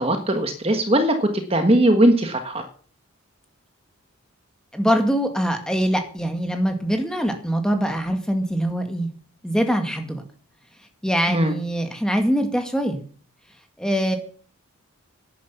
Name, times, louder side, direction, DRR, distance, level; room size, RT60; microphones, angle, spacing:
voice 1, 0.0-2.6 11.3-11.5, right 1 dB, 25° right, 6 dB, 1.4 m, -19 dB
voice 2, 4.7-9.1 9.4-10.2 11.0-13.0 13.8-14.2, equal, 5° left, 5 dB, 1.9 m, -23 dB
12.0 x 10.5 x 7.0 m, 0.43 s
head